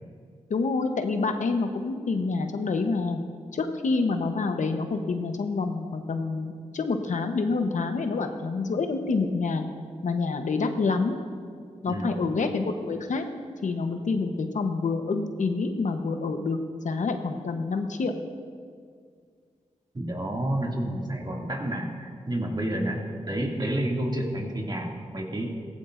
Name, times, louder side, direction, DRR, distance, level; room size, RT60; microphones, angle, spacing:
voice 1, 0.5-3.2 3.5-9.6 10.0-11.2 11.8-13.2 13.6-16.6 16.8-18.1, left 4 dB, 75° left, 6 dB, 1.0 m, -27 dB
voice 2, 11.8-12.2 19.9-23.0 23.3-25.5, right 1 dB, 35° right, -1 dB, 2.4 m, -29 dB
17.0 x 14.5 x 2.6 m, 2.1 s
cardioid pair, 55°, 13 cm